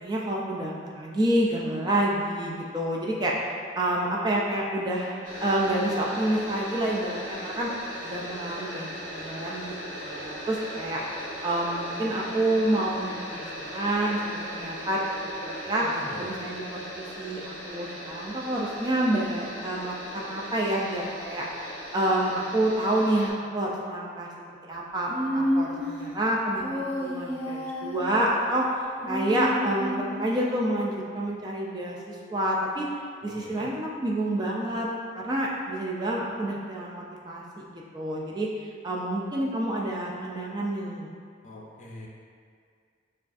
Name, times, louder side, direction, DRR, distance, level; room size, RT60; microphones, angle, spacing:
voice 1, 0.0-3.3 3.8-7.7 8.0-9.7 10.0-11.0 11.4-15.0 15.5-15.9 16.2-21.5 21.9-24.3 24.7-28.7 29.1-32.9 33.2-34.9 35.1-41.1, right 1 dB, 20° right, -3 dB, 0.3 m, -28 dB
sound 1, 5.2-23.3, equal, 75° right, 1.2 m, -38 dB
voice 2, 15.8-16.3 33.2-33.7 41.4-42.1, left 1 dB, 35° left, -3 dB, 0.5 m, -42 dB
Human voice, 25.1-26.0 26.6-28.1 29.0-30.3, equal, 10° left, 0.8 m, -30 dB
6.8 x 2.4 x 2.5 m, 2.2 s
head